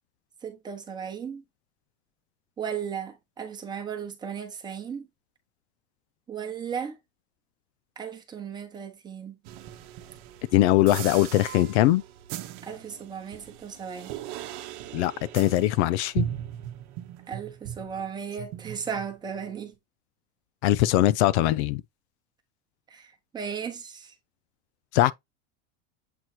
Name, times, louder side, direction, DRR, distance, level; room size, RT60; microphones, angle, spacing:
voice 1, 0.4-1.4 2.6-5.1 6.3-7.0 8.0-9.4 12.6-14.1 17.3-19.7 22.9-24.1, right 7 dB, 10° right, 1.0 m, -36 dB
sound 1, 9.4-18.1 18.4-19.5, right 11 dB, 45° right, 1.0 m, -38 dB
voice 2, 10.5-12.0 14.9-16.3 20.6-21.8 24.9-25.1, left 15 dB, 65° left, 0.5 m, -21 dB
7.9 x 2.9 x 4.4 m
supercardioid pair, 180°, 35 cm